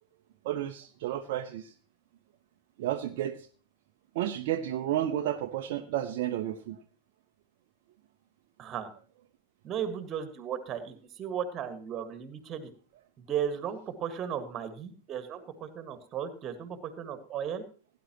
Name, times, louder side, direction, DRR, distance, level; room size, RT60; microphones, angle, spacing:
voice 1, 0.4-1.7 2.8-3.5 4.1-6.8, right 12 dB, 50° right, 6 dB, 0.7 m, -32 dB
voice 2, 8.6-8.9 9.6-12.7 13.2-17.6, right 8 dB, 30° right, 11 dB, 1.6 m, -35 dB
17.5 x 10.5 x 3.0 m, 0.39 s
figure-of-eight pair, 90°, 0 cm